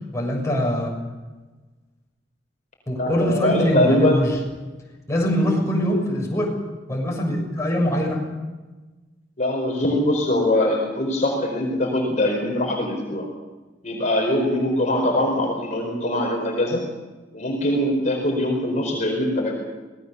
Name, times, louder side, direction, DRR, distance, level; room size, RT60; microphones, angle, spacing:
voice 1, 0.1-0.9 2.9-4.3 5.1-6.5 6.9-8.2, equal, 15° left, -2 dB, 6.7 m, -22 dB
voice 2, 3.0-4.3 5.4-5.5 9.4-13.3 13.8-16.8 17.3-19.6, left 1 dB, 40° left, 0 dB, 4.7 m, -22 dB
26.0 x 19.5 x 7.0 m, 1.2 s
head